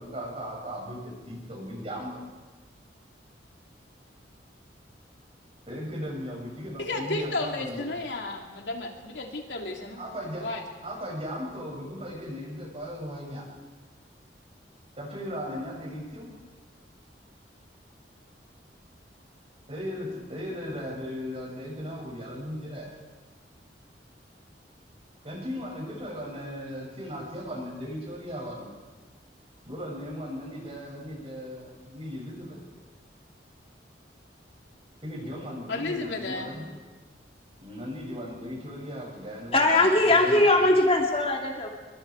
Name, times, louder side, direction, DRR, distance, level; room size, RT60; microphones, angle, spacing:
voice 1, 0.0-2.2 5.7-8.0 10.0-10.5 10.8-13.5 15.0-16.3 19.7-22.9 25.2-28.7 29.7-32.6 35.0-36.7 37.6-40.7, equal, 35° right, -1 dB, 7.3 m, -37 dB
voice 2, 6.8-10.0 10.4-10.6 35.7-36.5, left 2 dB, 85° left, 1 dB, 3.1 m, -33 dB
voice 3, 39.5-41.7, left 2 dB, 35° left, 0 dB, 2.6 m, -20 dB
27.0 x 23.5 x 4.9 m, 1.3 s
head